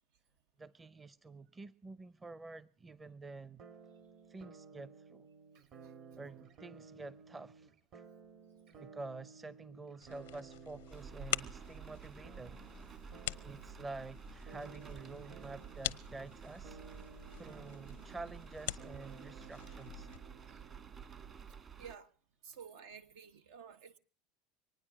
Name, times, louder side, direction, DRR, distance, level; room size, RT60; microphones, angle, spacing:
voice 1, 0.6-3.6 4.3-5.3 6.2-7.7 8.8-12.6 13.4-16.8 17.4-20.1, right 3 dB, 20° right, 0.7 m, -49 dB
sound 1, 3.6-21.4, right 5 dB, 55° right, 2.3 m, -56 dB
sound 2, 10.0-20.2, left 15 dB, 85° left, 0.7 m, -45 dB
sound 3, 10.9-22.0, right 7 dB, 35° right, 1.7 m, -51 dB
voice 2, 21.8-22.1 22.4-24.0, right 7 dB, 80° right, 1.4 m, -52 dB
24.5 x 9.6 x 6.2 m
supercardioid pair, 105°, 0 cm